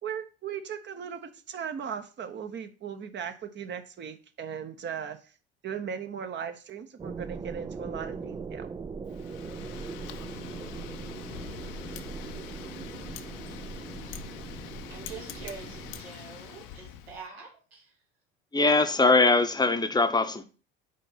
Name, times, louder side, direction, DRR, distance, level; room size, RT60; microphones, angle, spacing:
voice 1, 0.0-5.3 5.6-8.7, right 7 dB, 35° right, 1.0 m, -37 dB
sound 1, 7.0-16.0, right 5 dB, 15° right, 0.3 m, -40 dB
Wind, 9.1-17.2, left 10 dB, 60° left, 0.7 m, -44 dB
voice 2, 13.9-14.3 14.9-18.0, right 5 dB, 80° right, 2.5 m, -45 dB
voice 3, 18.5-20.5, left 3 dB, 15° left, 0.9 m, -22 dB
5.4 x 4.4 x 5.8 m
hypercardioid pair, 65°, 30 cm